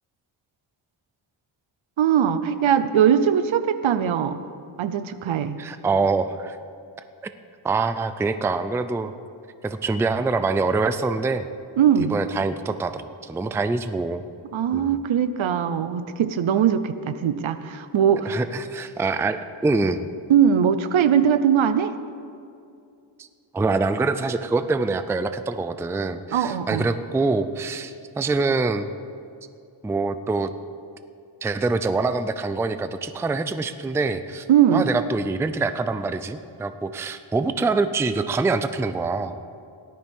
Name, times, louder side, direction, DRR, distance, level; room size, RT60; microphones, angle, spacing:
voice 1, 2.0-4.4 4.8-5.6 11.8-12.2 14.5-18.4 20.3-21.9 26.3-26.9 34.5-34.9, right 8 dB, 70° right, 12 dB, 0.8 m, -20 dB
voice 2, 5.6-6.6 7.6-9.1 9.6-11.5 12.0-14.2 14.7-15.0 18.3-20.0 23.2-23.3 23.5-28.9 29.8-30.5 31.4-34.5 34.7-39.4, right 3 dB, 5° right, 11 dB, 0.3 m, -25 dB
18.0 x 12.5 x 3.6 m, 2.5 s
wide cardioid pair, 100°, 49 cm